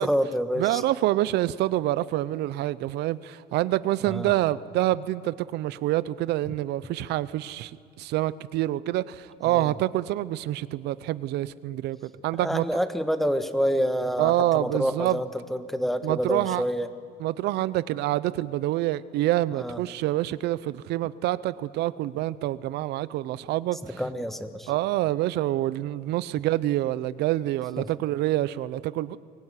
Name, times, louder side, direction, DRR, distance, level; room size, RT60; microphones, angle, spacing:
voice 1, 0.0-0.8 4.0-4.3 9.5-9.7 12.4-16.9 19.5-19.8 24.0-24.7 27.8-27.9, equal, ahead, 10 dB, 1.5 m, -27 dB
voice 2, 0.6-7.7 8.0-12.6 14.2-15.2 16.0-16.6 17.2-24.0 24.7-29.2, right 15 dB, 80° right, 17 dB, 0.7 m, -27 dB
23.5 x 18.0 x 9.8 m, 2.4 s
cardioid pair, 110°, 17 cm